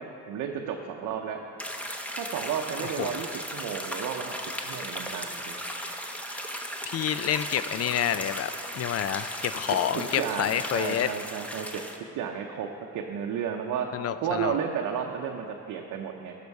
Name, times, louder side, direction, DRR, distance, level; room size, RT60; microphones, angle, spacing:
voice 1, 0.0-1.4 2.2-4.3 4.6-5.6 9.9-11.8 12.1-13.9 14.2-16.4, right 7 dB, 85° right, 2 dB, 0.7 m, -32 dB
sound 1, 1.6-12.0, equal, 5° left, 0.8 m, -36 dB
voice 2, 6.9-11.1 13.9-14.6, left 10 dB, 55° left, 13 dB, 0.4 m, -28 dB
12.0 x 6.7 x 4.7 m, 2.7 s
cardioid pair, 90°, 30 cm